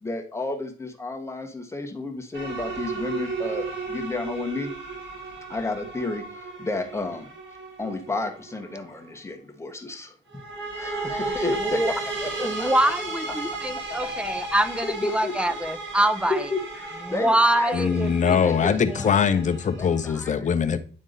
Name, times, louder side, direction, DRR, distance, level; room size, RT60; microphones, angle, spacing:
voice 1, 0.0-4.7 5.5-7.3 7.8-10.4 10.8-12.7 13.5-13.6 14.8-15.3 16.3-17.7 18.4-18.8 19.1-19.4 19.8-20.4, left 2 dB, 15° left, 1.4 m, -32 dB
sound 1, 2.3-8.8 10.3-20.2, right 3 dB, 70° right, 2.5 m, -34 dB
voice 2, 11.2-11.9 12.4-16.5 17.1-19.1, right 1 dB, 5° right, 0.6 m, -25 dB
voice 3, 17.7-20.8, left 7 dB, 40° left, 0.7 m, -22 dB
9.4 x 3.6 x 3.9 m
cardioid pair, 90°, 20 cm